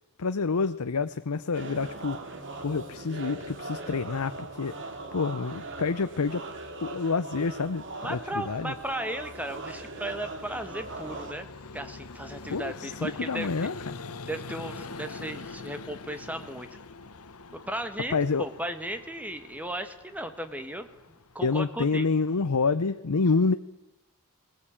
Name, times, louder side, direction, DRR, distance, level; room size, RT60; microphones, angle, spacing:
voice 1, 0.2-2.2 2.6-4.7 5.1-6.5 6.8-8.7 12.5-13.7 18.1-18.4 21.4-23.5, left 4 dB, 90° left, 10 dB, 0.7 m, -28 dB
sound 1, 1.5-11.3, right 2 dB, 60° right, 2.4 m, -40 dB
Vehicle, 7.8-22.5, left 3 dB, 70° left, 1.2 m, -45 dB
voice 2, 8.0-11.5 11.7-13.7 14.3-16.7 17.5-20.9 21.3-22.1, right 1 dB, 5° right, 8 dB, 1.7 m, -36 dB
19.5 x 19.5 x 8.8 m, 1.0 s
head